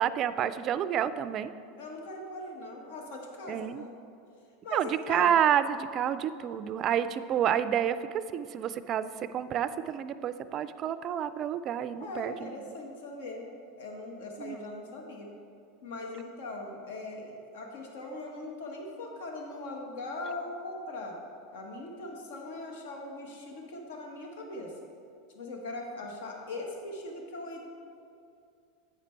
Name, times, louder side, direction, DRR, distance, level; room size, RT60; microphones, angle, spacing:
voice 1, 0.0-1.5 3.5-3.8 4.7-12.8 14.4-14.6, right 9 dB, 40° right, 13 dB, 0.3 m, -29 dB
voice 2, 1.8-3.9 4.6-5.3 12.0-13.5 13.8-15.3 15.8-21.2 21.5-24.7 25.3-27.6, left 2 dB, 80° left, 1 dB, 1.2 m, -40 dB
8.9 x 5.1 x 4.4 m, 2.5 s
supercardioid pair, 110°, 0 cm